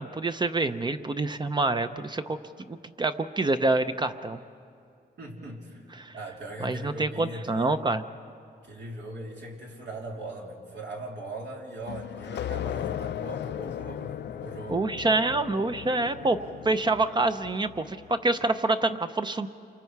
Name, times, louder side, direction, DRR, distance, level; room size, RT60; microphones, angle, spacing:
voice 1, 0.0-2.4 2.7-4.4 6.0-6.1 6.6-8.0 14.7-16.4 16.6-19.5, right 2 dB, 25° right, 9 dB, 0.6 m, -26 dB
voice 2, 5.2-7.7 8.6-14.8, right 1 dB, 75° right, -1 dB, 3.3 m, -40 dB
sound 1, 11.9-18.2, left 10 dB, 75° left, 0.5 m, -37 dB
28.0 x 24.5 x 4.7 m, 2.4 s
wide cardioid pair, 140°, 18 cm